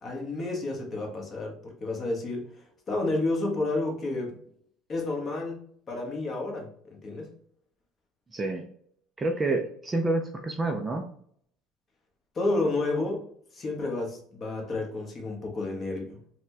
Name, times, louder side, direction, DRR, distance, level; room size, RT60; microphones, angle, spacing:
voice 1, 0.0-2.4 2.9-4.4 4.9-7.3 12.3-13.3 13.5-16.2, left 2 dB, 30° left, 1 dB, 0.9 m, -31 dB
voice 2, 8.3-8.7 9.2-11.1, right 2 dB, 15° right, 4 dB, 0.4 m, -28 dB
4.1 x 2.1 x 2.6 m, 0.63 s
cardioid pair, 140°, 0 cm